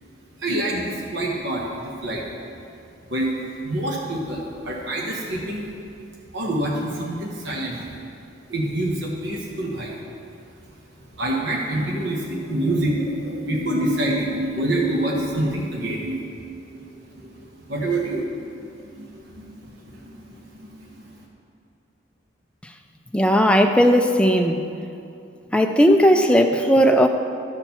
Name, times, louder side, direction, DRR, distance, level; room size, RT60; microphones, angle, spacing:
voice 1, 0.4-2.2 3.1-5.6 6.3-7.9 8.5-9.9 11.2-21.0, right 1 dB, 60° right, -3 dB, 1.3 m, -27 dB
voice 2, 23.1-24.6 25.5-27.1, equal, 5° left, 4 dB, 0.4 m, -16 dB
12.5 x 4.5 x 7.0 m, 2.6 s
head